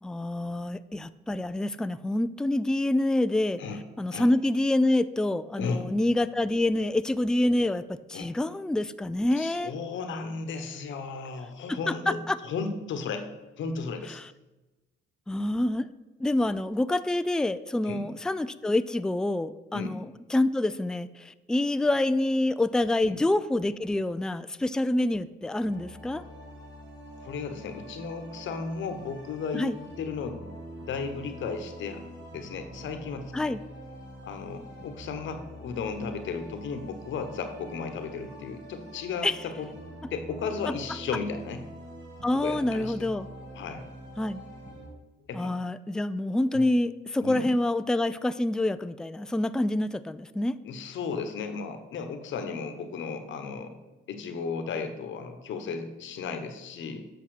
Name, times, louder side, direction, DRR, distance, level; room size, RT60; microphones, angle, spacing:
voice 1, 0.0-3.6 4.0-9.7 11.7-12.4 14.2-14.3 15.3-15.9 16.2-26.2 29.5-29.8 33.3-33.6 39.2-39.4 42.2-43.3 44.2-44.5 45.3-50.6, left 1 dB, 5° left, 13 dB, 0.3 m, -27 dB
voice 2, 5.6-5.9 8.1-8.3 9.4-12.2 12.4-13.3 13.6-14.2 17.8-18.0 19.7-20.0 23.0-23.2 27.2-30.4 30.7-32.0 32.3-33.6 34.2-39.7 40.1-41.6 42.4-43.1 43.5-43.9 45.3-45.5 46.5-46.6 47.2-47.4 50.6-53.8 54.1-57.1, left 5 dB, 70° left, 8 dB, 1.1 m, -35 dB
sound 1, 25.6-44.9, right 1 dB, 65° right, 2.1 m, -45 dB
8.2 x 5.5 x 6.4 m, 1.1 s
cardioid pair, 90°, 20 cm